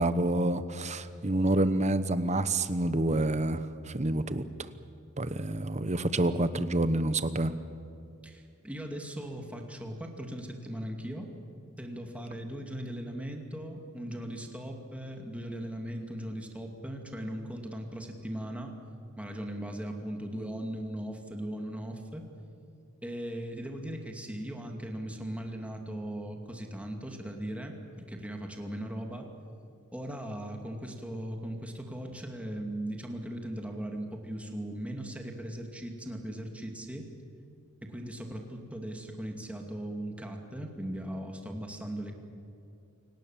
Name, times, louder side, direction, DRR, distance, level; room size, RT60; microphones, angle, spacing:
voice 1, 0.0-4.4 5.2-7.5, right 1 dB, 30° right, 12 dB, 1.0 m, -28 dB
voice 2, 8.2-11.3 11.8-18.7 19.2-22.3 23.0-29.3 29.9-37.1 37.9-42.1, right 1 dB, 5° right, 2 dB, 2.4 m, -38 dB
28.5 x 18.5 x 7.4 m, 2.7 s
head